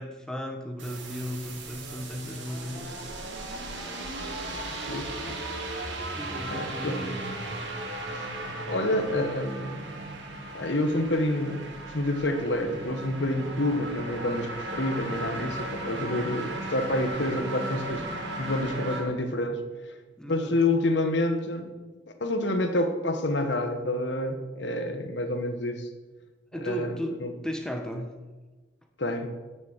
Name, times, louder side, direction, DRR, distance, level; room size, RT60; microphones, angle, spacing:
voice 1, 0.0-3.0 6.2-7.2 16.0-16.4 20.2-20.5 26.5-27.1 27.4-28.2, equal, 5° left, 4 dB, 1.2 m, -35 dB
sound 1, 0.8-19.0, right 2 dB, 80° right, 2.7 m, -36 dB
voice 2, 4.5-5.4 6.5-7.0 8.1-8.3 8.6-9.8 10.5-18.0 18.4-19.6 20.3-21.7 22.2-25.9 26.6-27.3 29.0-29.3, left 1 dB, 70° left, 6 dB, 1.4 m, -28 dB
11.5 x 7.0 x 7.3 m, 1.3 s
head